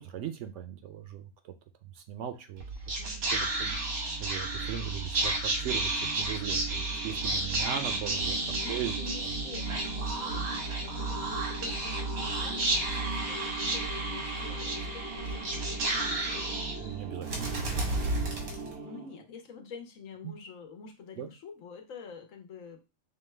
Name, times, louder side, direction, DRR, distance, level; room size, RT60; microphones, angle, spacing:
voice 1, 0.0-1.5 1.9-2.6 3.3-3.8 4.2-8.4 8.7-9.0 16.8-17.5 20.2-20.3 21.2-21.3, right 9 dB, 70° right, 8 dB, 0.8 m, -38 dB
Whispering, 2.6-19.2, right 2 dB, 90° right, 1.6 m, -32 dB
voice 2, 8.6-16.6 18.8-22.8, left 5 dB, 70° left, 4 dB, 1.2 m, -47 dB
5.4 x 2.3 x 3.2 m, 0.28 s
omnidirectional pair, 1.4 m